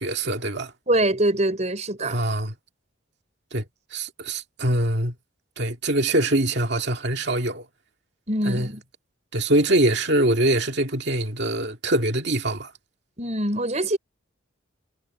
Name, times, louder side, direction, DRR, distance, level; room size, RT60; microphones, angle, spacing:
voice 1, 0.0-0.7 2.0-2.5 3.5-3.7 3.9-5.1 5.6-7.7 8.4-8.7 9.3-12.7, right 1 dB, 55° right, 2.2 m, -23 dB
voice 2, 0.9-2.2 8.3-8.8 13.2-14.0, right 1 dB, 35° right, 4.9 m, -23 dB
head